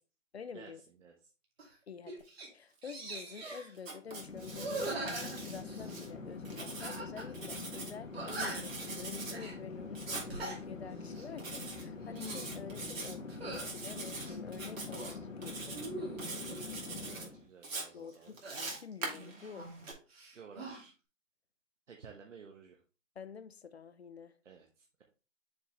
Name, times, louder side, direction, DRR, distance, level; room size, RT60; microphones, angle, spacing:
voice 1, 0.3-0.8 1.9-15.8 17.9-19.7 23.2-24.3, left 6 dB, 55° left, 0.6 m, -48 dB
sound 1, 1.6-1.7 2.1-2.5 2.8-3.7 4.5-6.0 6.8-7.3 7.6-7.7 8.1-8.8 9.3-9.6 10.1-10.6 11.0-11.3 11.9-12.5 13.3-13.7 14.2-15.2 15.7-16.6 18.4-19.8 20.1-20.8, right 2 dB, 50° right, 2.3 m, -42 dB
Writing, 3.8-6.1 6.5-7.9 8.3-9.4 10.0-10.3 11.4-11.8 12.2-13.1 13.5-14.3 14.5-15.1 15.4-15.9 16.2-17.3 17.6-19.9, right 3 dB, 85° right, 2.7 m, -43 dB
Chatter / Fixed-wing aircraft airplane, 4.0-17.5, left 3 dB, 85° left, 2.0 m, -45 dB
voice 2, 16.4-16.7 17.0-18.4 20.3-20.9 21.9-22.8 24.4-25.0, right 6 dB, 65° right, 1.1 m, -54 dB
6.8 x 4.7 x 3.0 m
hypercardioid pair, 170°, 39 cm